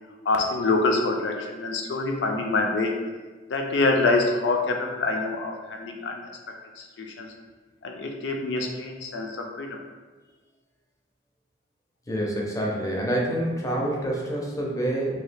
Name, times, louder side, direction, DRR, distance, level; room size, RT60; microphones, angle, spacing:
voice 1, 0.3-2.9 3.5-6.2 6.8-7.3 7.8-9.8, left 3 dB, 75° left, 2 dB, 0.4 m, -26 dB
voice 2, 12.1-15.2, right 1 dB, 20° left, -2 dB, 0.5 m, -27 dB
2.8 x 2.3 x 3.3 m, 1.3 s
head